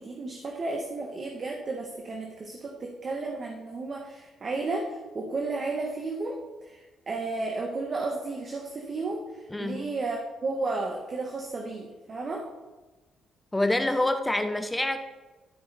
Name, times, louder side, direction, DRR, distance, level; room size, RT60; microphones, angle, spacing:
voice 1, 0.0-12.5, right 3 dB, 40° right, 1 dB, 1.2 m, -33 dB
voice 2, 9.5-9.8 13.5-15.0, left 1 dB, 10° left, 8 dB, 0.6 m, -26 dB
13.0 x 4.8 x 4.1 m, 1.2 s
cardioid pair, 90°, 0 cm